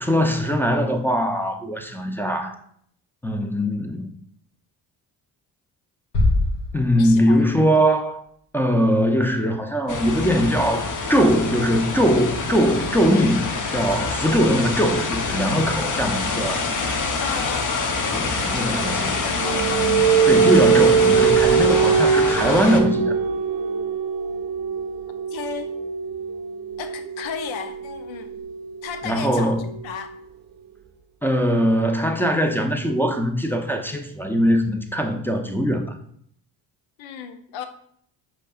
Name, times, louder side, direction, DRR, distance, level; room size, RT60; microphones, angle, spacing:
voice 1, 0.0-2.6 3.2-4.1 6.7-8.2 8.5-16.6 18.1-19.1 20.3-23.1 29.0-29.7 31.2-36.0, equal, 5° left, 2 dB, 0.5 m, -21 dB
sound 1, 6.1-7.7, left 2 dB, 60° left, 1.9 m, -23 dB
voice 2, 6.9-7.5 17.2-18.4 19.1-19.9 25.3-25.7 26.8-28.3 28.8-30.1 37.0-37.7, left 7 dB, 75° left, 8 dB, 0.7 m, -34 dB
sound 2, 9.9-22.8, left 4 dB, 40° left, 0.8 m, -26 dB
sound 3, 18.5-30.0, right 6 dB, 50° right, 0.6 m, -22 dB
5.2 x 3.9 x 2.4 m, 0.65 s
supercardioid pair, 55°, 47 cm